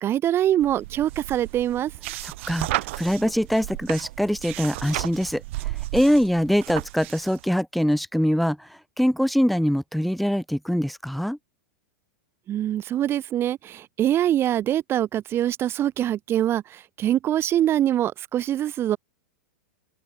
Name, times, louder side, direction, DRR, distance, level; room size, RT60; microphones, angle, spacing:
voice 1, 0.0-1.9 12.5-19.0, right 12 dB, 30° right, 3.0 m, -24 dB
sound 1, 0.6-7.4, right 19 dB, 55° right, 3.5 m, -33 dB
voice 2, 2.2-11.4, equal, ahead, 3.3 m, -23 dB
open air
hypercardioid pair, 105°, 8 cm